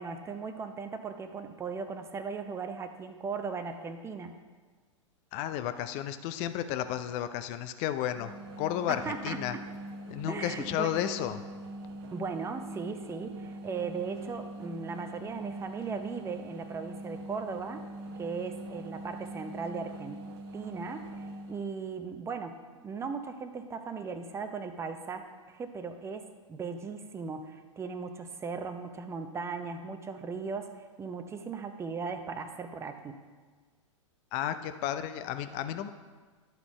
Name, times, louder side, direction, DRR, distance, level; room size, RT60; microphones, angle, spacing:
voice 1, 0.0-4.3 8.9-9.6 10.3-11.1 12.1-17.8 18.2-20.2 20.5-33.2, right 5 dB, 15° right, 8 dB, 0.6 m, -38 dB
voice 2, 5.3-9.6 10.1-11.4 34.3-35.9, left 11 dB, 40° left, 10 dB, 0.5 m, -33 dB
sound 1, 8.1-21.7, right 1 dB, 55° right, 0.9 m, -43 dB
11.5 x 4.1 x 4.9 m, 1.5 s
hypercardioid pair, 105°, 17 cm